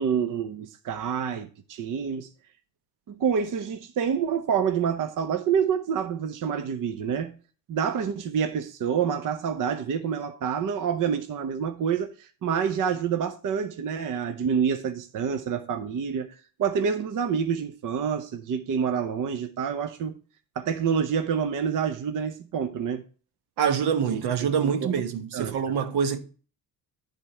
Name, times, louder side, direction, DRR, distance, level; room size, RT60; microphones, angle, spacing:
voice 1, 0.0-2.3 3.1-7.3 7.7-20.1 20.6-23.0 24.1-24.9 25.3-25.8, right 7 dB, 55° right, 0.8 m, -27 dB
voice 2, 23.6-26.2, right 7 dB, 80° right, 1.2 m, -25 dB
11.0 x 3.7 x 4.2 m
cardioid pair, 105°, 38 cm